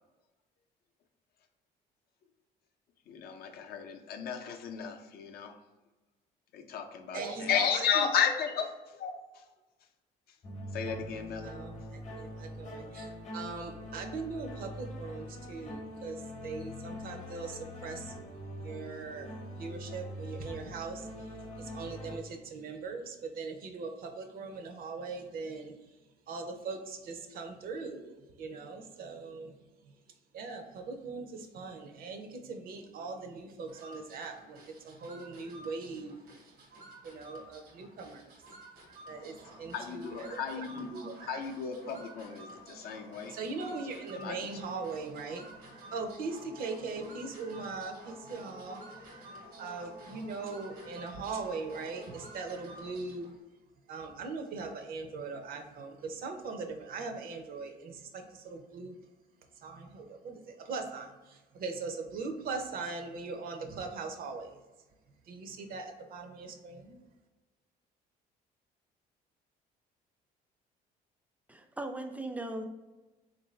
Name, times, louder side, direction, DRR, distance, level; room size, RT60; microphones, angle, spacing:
voice 1, 3.1-5.6 6.5-9.4 10.7-11.5 39.7-40.8 41.3-43.4 43.7-44.6 47.0-47.1, left 7 dB, 65° left, 4 dB, 0.5 m, -34 dB
voice 2, 7.1-8.1 11.4-18.1 18.6-25.8 26.3-29.6 30.3-36.2 37.0-38.2 39.1-41.4 43.3-49.2 49.6-53.4 53.9-58.9 59.6-64.6 65.3-67.0, right 4 dB, 60° right, 5 dB, 0.6 m, -40 dB
sound 1, 10.4-22.2, left 1 dB, 45° left, 0.9 m, -43 dB
sound 2, 33.7-53.4, right 1 dB, 85° right, 1.2 m, -51 dB
voice 3, 71.5-72.6, right 1 dB, 10° right, 6 dB, 0.3 m, -38 dB
3.7 x 2.6 x 3.1 m, 1.1 s
cardioid pair, 110°, 17 cm